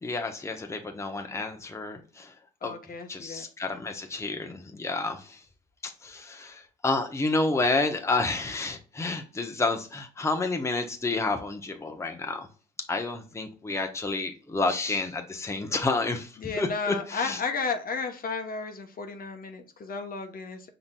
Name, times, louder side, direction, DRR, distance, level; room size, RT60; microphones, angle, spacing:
voice 1, 0.0-2.3 2.6-2.7 3.1-5.4 5.8-12.5 12.9-17.4, left 3 dB, 15° left, 4 dB, 0.8 m, -30 dB
voice 2, 2.6-3.4 16.4-20.7, left 4 dB, 45° left, 5 dB, 0.9 m, -33 dB
5.7 x 3.9 x 2.2 m, 0.38 s
cardioid pair, 90°, 20 cm